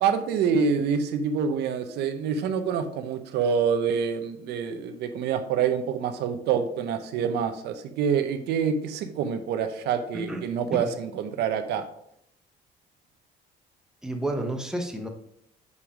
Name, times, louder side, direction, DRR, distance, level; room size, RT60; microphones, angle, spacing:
voice 1, 0.0-11.9, right 6 dB, 80° right, 8 dB, 0.7 m, -26 dB
voice 2, 14.0-15.1, right 1 dB, 5° right, 4 dB, 1.0 m, -31 dB
5.5 x 5.0 x 5.0 m, 0.70 s
cardioid pair, 110°, 17 cm